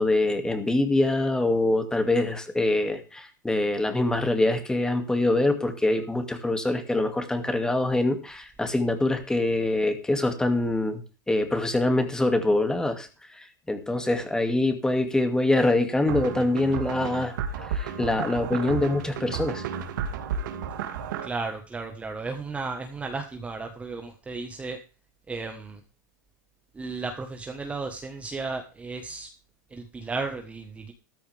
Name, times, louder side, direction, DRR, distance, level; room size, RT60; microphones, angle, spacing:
voice 1, 0.0-11.0 11.3-19.7, left 2 dB, 5° left, 7 dB, 2.4 m, -24 dB
sound 1, 16.1-21.3, right 7 dB, 75° right, 2.4 m, -32 dB
voice 2, 21.2-24.8 25.3-25.8 26.7-29.3 29.7-30.9, right 3 dB, 10° right, 5 dB, 1.4 m, -34 dB
14.0 x 13.0 x 3.5 m, 0.35 s
supercardioid pair, 135°, 10 cm